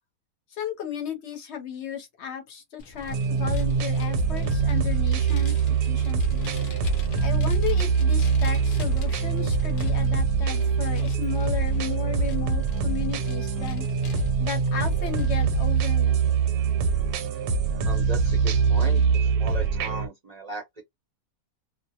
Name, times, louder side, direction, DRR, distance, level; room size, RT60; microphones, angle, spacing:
voice 1, 0.5-6.5 7.2-13.8 14.4-16.2, left 8 dB, 60° left, 0.9 m, -35 dB
Vehicle, 2.8-19.7, left 3 dB, 85° left, 0.4 m, -43 dB
sound 1, 3.1-20.1, right 5 dB, 80° right, 1.1 m, -24 dB
voice 2, 17.8-20.8, right 4 dB, 45° right, 0.5 m, -37 dB
2.5 x 2.0 x 2.7 m
omnidirectional pair, 1.6 m